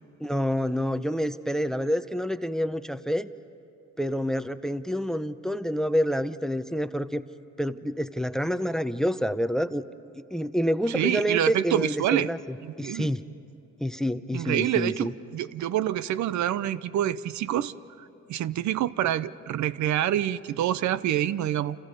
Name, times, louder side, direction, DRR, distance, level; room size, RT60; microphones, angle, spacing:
voice 1, 0.2-3.3 4.0-7.2 7.6-9.8 10.3-13.2 13.8-15.1, equal, ahead, 13 dB, 0.7 m, -28 dB
voice 2, 10.9-12.3 12.6-13.1 14.3-21.8, right 11 dB, 70° right, 16 dB, 0.6 m, -27 dB
29.5 x 28.5 x 5.3 m, 2.8 s
cardioid pair, 90°, 30 cm